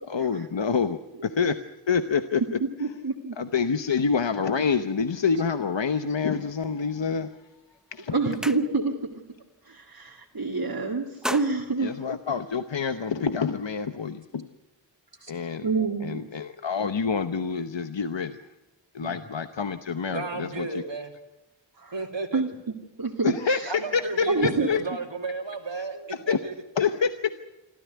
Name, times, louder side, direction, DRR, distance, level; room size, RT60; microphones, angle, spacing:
voice 1, 0.1-1.6 1.9-2.4 3.4-7.3 7.9-8.1 11.8-14.5 15.3-15.7 16.0-18.4 18.9-20.7 23.2-23.6 23.9-24.8 25.8-25.9 26.1-26.4 26.8-27.1, left 5 dB, 75° left, 9 dB, 0.9 m, -27 dB
voice 2, 2.6-3.4 8.1-8.9 9.6-11.9 15.6-16.2 21.8-21.9 22.3-22.5 23.0-23.7 24.3-24.7, right 3 dB, 55° right, -1 dB, 2.2 m, -27 dB
sound 1, 7.4-7.6 8.0-9.1 9.5-9.7 10.0-10.6 10.9-12.8, equal, ahead, 0.9 m, -37 dB
voice 3, 20.1-21.1 21.9-22.4 23.7-26.0 26.3-26.5, right 3 dB, 75° right, 2 dB, 2.8 m, -33 dB
26.0 x 14.0 x 9.4 m, 1.0 s
wide cardioid pair, 50°, 45 cm